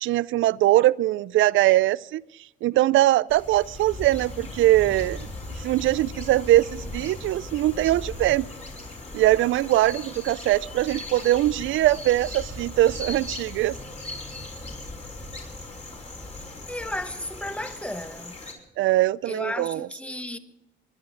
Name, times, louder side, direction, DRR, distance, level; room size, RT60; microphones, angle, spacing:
voice 1, 0.0-2.2 2.6-5.3 5.6-8.5 9.1-13.7 18.8-19.9, right 15 dB, 80° right, 0.5 m, -21 dB
sound 1, 3.3-18.5, left 2 dB, 35° left, 4.9 m, -38 dB
voice 2, 16.7-18.5 19.2-20.4, left 1 dB, 5° left, 1.2 m, -34 dB
23.0 x 11.5 x 5.1 m
cardioid pair, 90°, 20 cm